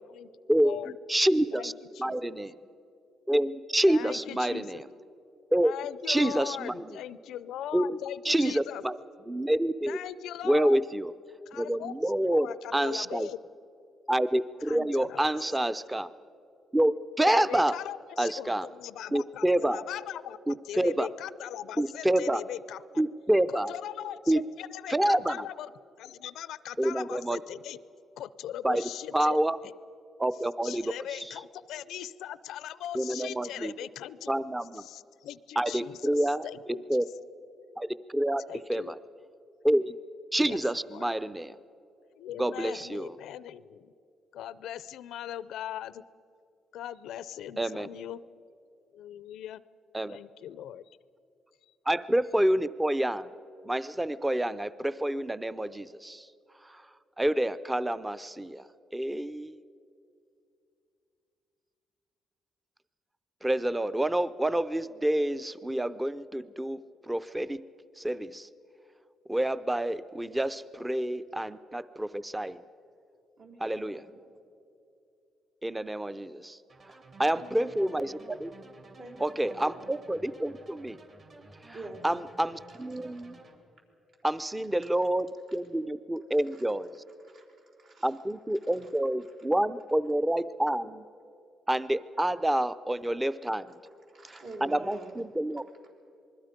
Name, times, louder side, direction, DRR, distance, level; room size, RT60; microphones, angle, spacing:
voice 1, 0.1-1.0 1.5-2.3 3.8-4.8 5.6-8.8 9.9-10.8 11.5-11.9 12.3-13.4 14.6-15.2 17.2-23.0 23.5-25.7 26.0-27.8 28.2-29.4 30.6-34.3 34.7-36.8 38.5-38.9 40.4-40.6 40.9-41.1 42.2-43.9 44.3-46.1 46.7-48.2 48.9-49.6 50.1-50.8, left 11 dB, 85° left, 17 dB, 0.5 m, -40 dB
voice 2, 1.1-1.7 2.0-2.5 3.3-4.8 5.5-5.7 6.1-7.0 7.7-8.0 8.2-9.0 9.3-10.0 10.4-11.1 11.6-12.5 12.7-13.3 14.1-16.1 16.7-17.8 18.2-18.7 19.1-19.8 20.5-21.1 21.8-22.4 23.0-23.7 24.3-24.4 24.9-25.4 26.8-27.4 28.6-28.8 29.1-29.6 30.2-30.9 32.9-33.7 34.3-34.9 35.6-36.4 36.9-37.0 37.8-38.4 38.7-39.0 39.6-40.0 40.3-41.5 42.4-43.1 47.6-47.9 49.9-50.2 51.9-53.3 53.6-56.3 56.6-56.8 57.2-58.6 58.9-59.6 63.4-67.6 68.0-68.5 69.3-72.6 73.6-74.0 75.6-76.6 77.2-78.5 79.2-81.0 81.7-81.8 82.0-83.4 84.2-86.9 88.0-91.0 91.7-93.7 94.6-95.6, right 1 dB, 10° right, 14 dB, 0.6 m, -28 dB
voice 3, 73.4-74.3 76.9-77.0 77.3-78.1 79.0-79.8 81.7-82.1 82.7-83.3 86.3-86.7 87.2-88.2 88.6-88.9 93.7-93.8 94.1-95.2, right 2 dB, 70° right, -1 dB, 3.9 m, -46 dB
sound 1, 76.7-83.6, right 2 dB, 45° right, 2.9 m, -53 dB
27.0 x 21.0 x 5.2 m, 2.6 s
cardioid pair, 90°, 0 cm